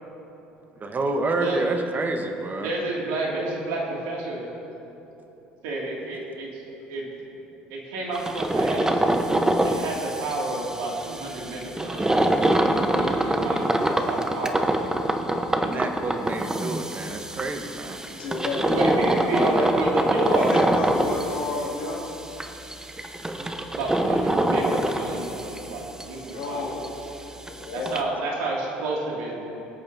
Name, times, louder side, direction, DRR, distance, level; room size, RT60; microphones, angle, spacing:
voice 1, 0.8-2.7 15.6-18.0, right 2 dB, 30° right, 5 dB, 1.2 m, -29 dB
voice 2, 2.6-4.4 5.6-6.6 6.9-7.0 7.7-9.0 9.6-12.2 12.9-15.0 18.7-20.7 23.7-26.7 27.7-29.4, right 2 dB, 70° right, -3 dB, 2.4 m, -30 dB
sound 1, 8.1-26.0 26.3-26.4 26.8-26.9 27.2-27.3 27.5-28.0, right 1 dB, 10° right, 1.0 m, -25 dB
voice 3, 18.1-19.0 20.3-22.1 26.3-28.2, left 3 dB, 75° left, -4 dB, 2.4 m, -32 dB
21.5 x 8.7 x 2.8 m, 3.0 s
hypercardioid pair, 65°, 6 cm